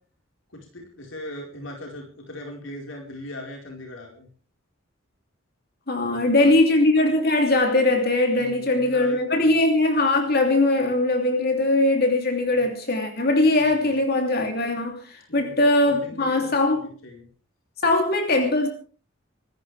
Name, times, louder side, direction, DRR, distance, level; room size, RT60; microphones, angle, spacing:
voice 1, 0.5-4.3 6.0-6.5 8.3-9.5 12.6-12.7 13.6-14.0 15.3-15.5 15.8-16.5 17.0-17.3, left 1 dB, 80° left, 4.6 m, -39 dB
voice 2, 5.9-16.9 17.8-18.7, left 2 dB, 50° left, 3.0 m, -21 dB
26.5 x 14.5 x 3.4 m
head